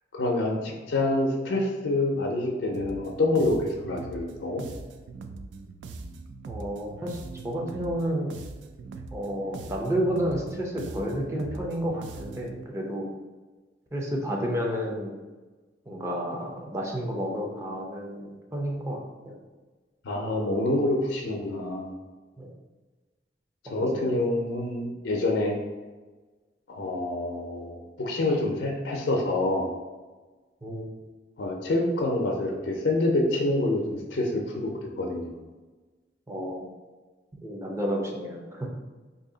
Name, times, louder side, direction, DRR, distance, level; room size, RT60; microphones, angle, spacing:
voice 1, 0.1-4.7 20.0-21.9 23.6-25.5 26.7-29.7 31.4-34.7 35.0-35.3, left 2 dB, 80° left, 0 dB, 0.5 m, -27 dB
sound 1, 2.7-12.6, right 3 dB, 80° right, 0.3 m, -42 dB
voice 2, 6.5-7.2 7.4-8.4 9.1-13.1 13.9-15.1 15.9-19.4 20.5-20.6 22.4-22.5 23.7-24.2 30.6-30.9 36.3-36.7 37.4-38.7, equal, 15° right, -1 dB, 0.5 m, -31 dB
2.7 x 2.7 x 3.8 m, 1.3 s
head